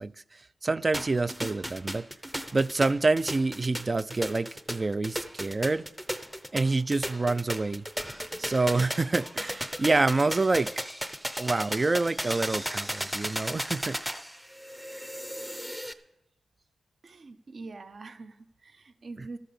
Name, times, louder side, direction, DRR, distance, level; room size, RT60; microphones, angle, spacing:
voice 1, 0.0-2.1 2.5-5.9 6.5-7.9 8.4-10.7 11.4-14.0, right 3 dB, 30° right, 17 dB, 0.4 m, -27 dB
sound 1, 0.9-15.9, equal, 5° right, 0.7 m, -35 dB
voice 2, 17.0-19.4, right 3 dB, 50° right, 11 dB, 0.8 m, -44 dB
13.0 x 9.0 x 7.0 m, 0.90 s
wide cardioid pair, 115°, 0 cm